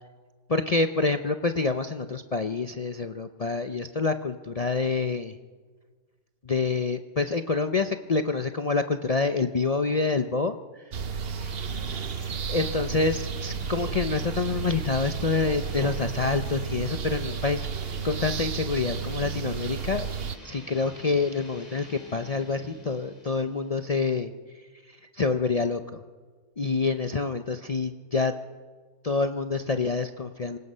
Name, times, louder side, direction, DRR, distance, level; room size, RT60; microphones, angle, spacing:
voice 1, 0.5-5.3 6.4-10.6 11.3-11.5 12.5-17.7 18.0-20.1 20.4-24.3 24.9-26.0 26.6-28.3 29.0-30.6, left 4 dB, 45° left, 8 dB, 0.4 m, -27 dB
sound 1, 10.9-20.4, right 6 dB, 50° right, 0.9 m, -32 dB
sound 2, 11.4-23.9, left 1 dB, 25° left, 3.7 m, -47 dB
26.5 x 17.5 x 5.5 m, 1.5 s
omnidirectional pair, 1.5 m